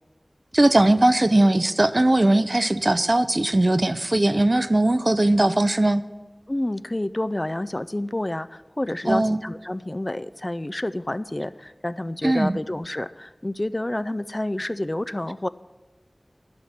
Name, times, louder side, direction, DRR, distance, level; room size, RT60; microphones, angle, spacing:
voice 1, 0.5-6.0 9.1-9.4 12.2-12.6, right 1 dB, 45° right, 13 dB, 0.5 m, -19 dB
voice 2, 6.5-15.5, left 1 dB, 35° left, 15 dB, 0.3 m, -29 dB
11.5 x 5.8 x 9.0 m, 1.2 s
wide cardioid pair, 45°, 0 cm